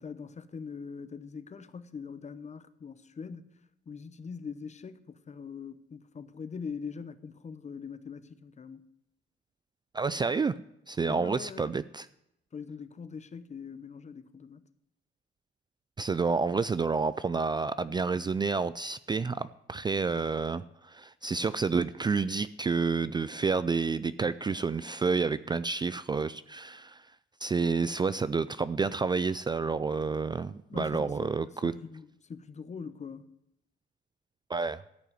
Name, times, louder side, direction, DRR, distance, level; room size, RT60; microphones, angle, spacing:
voice 1, 0.0-3.5 3.9-8.8 11.0-11.8 12.5-14.6 30.7-31.4 31.6-33.3, left 6 dB, 35° left, 0.8 m, -42 dB
voice 2, 9.9-10.6 10.9-12.1 16.0-27.1 27.4-31.7 34.5-34.8, right 4 dB, 20° right, 0.3 m, -29 dB
13.5 x 5.6 x 9.1 m
cardioid pair, 90°, 20 cm